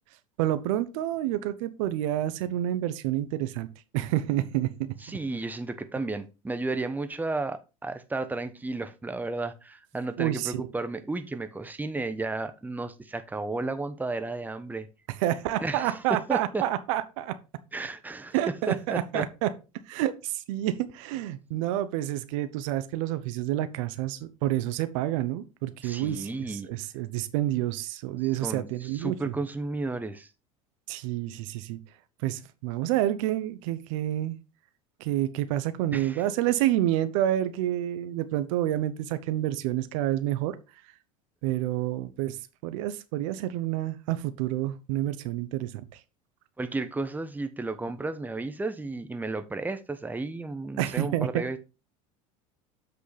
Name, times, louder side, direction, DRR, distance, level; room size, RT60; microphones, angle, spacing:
voice 1, 0.4-3.7 3.9-5.2 10.2-10.6 15.1-17.4 18.3-19.5 19.9-29.3 30.9-31.8 32.2-34.4 35.0-40.6 41.4-42.4 42.6-45.7 50.8-51.4, right 13 dB, 70° right, 0.9 m, -28 dB
voice 2, 5.0-14.9 15.6-16.6 17.7-18.3 18.7-19.3 25.8-26.7 28.4-30.3 35.9-36.2 46.6-51.6, right 3 dB, 10° right, 1.0 m, -33 dB
7.8 x 6.2 x 3.4 m
hypercardioid pair, 90°, 17 cm